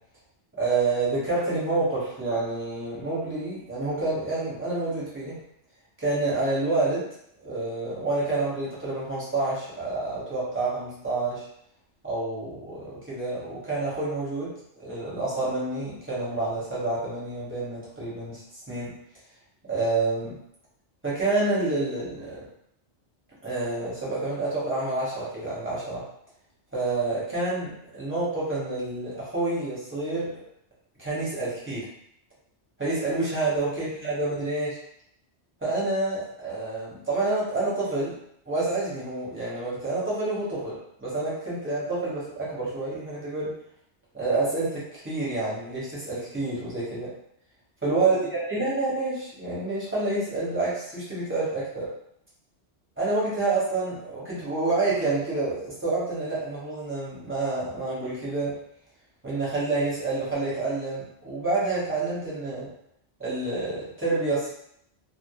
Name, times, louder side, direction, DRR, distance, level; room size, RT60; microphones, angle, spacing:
voice 1, 0.6-5.3 6.0-7.0 7.4-11.4 12.0-14.5 14.8-18.4 18.7-18.9 19.7-20.4 21.0-22.4 23.4-26.0 26.7-30.4 31.0-31.9 32.8-34.8 35.6-38.1 38.5-43.5 44.1-47.1 47.8-51.9 53.0-58.6 59.2-62.7 63.2-64.5, right 2 dB, 10° right, -8 dB, 0.8 m, -28 dB
2.1 x 2.0 x 2.9 m, 0.71 s
omnidirectional pair, 1.2 m